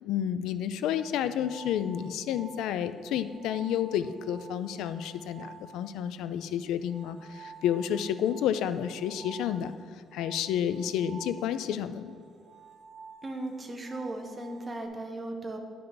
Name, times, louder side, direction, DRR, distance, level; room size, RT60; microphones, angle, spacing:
voice 1, 0.0-9.7 10.1-12.1, left 9 dB, 85° left, 12 dB, 0.4 m, -30 dB
sound 1, 0.9-14.9, right 4 dB, 35° right, 1.4 m, -50 dB
voice 2, 13.2-15.6, right 2 dB, 15° right, 3 dB, 0.7 m, -37 dB
10.0 x 5.6 x 3.9 m, 2.1 s
cardioid pair, 180°, 0 cm